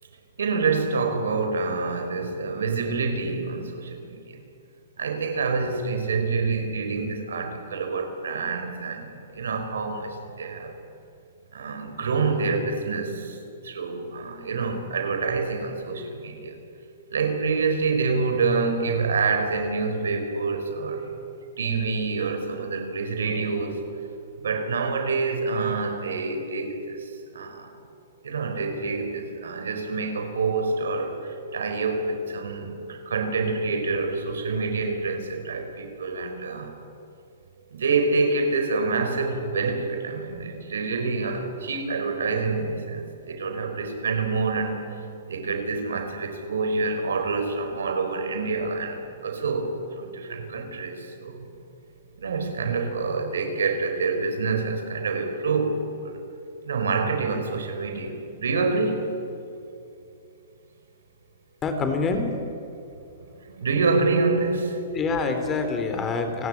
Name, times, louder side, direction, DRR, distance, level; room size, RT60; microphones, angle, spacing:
voice 1, 0.4-4.4 5.0-10.8 11.5-16.6 17.1-21.2 21.6-23.8 24.4-27.7 28.2-36.7 37.7-51.5 52.2-56.2 56.6-59.1 63.2-64.9, right 4 dB, 85° right, 7 dB, 4.8 m, -27 dB
voice 2, 61.6-62.3 64.9-66.5, left 4 dB, 20° left, 6 dB, 3.9 m, -26 dB
29.0 x 18.0 x 9.8 m, 2.7 s
hypercardioid pair, 135°, 0 cm